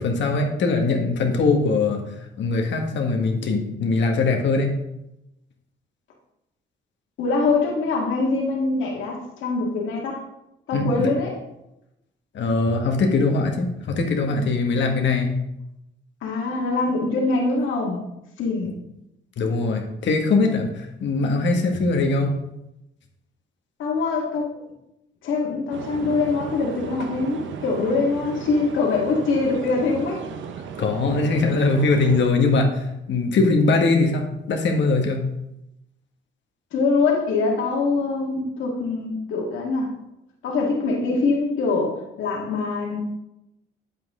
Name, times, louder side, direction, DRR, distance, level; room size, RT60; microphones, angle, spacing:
voice 1, 0.0-2.0 2.4-4.7 10.7-11.1 12.3-15.4 19.4-22.3 30.8-35.3, left 3 dB, 65° left, 3 dB, 1.6 m, -21 dB
voice 2, 7.2-10.2 10.7-11.4 16.2-18.0 18.4-18.7 23.8-24.5 25.2-30.2 36.7-39.9 40.4-43.0, left 3 dB, 85° left, -1 dB, 1.9 m, -23 dB
sound 1, 25.7-32.3, right 6 dB, 75° right, 0.9 m, -36 dB
8.8 x 7.5 x 3.7 m, 0.87 s
cardioid pair, 90°, 20 cm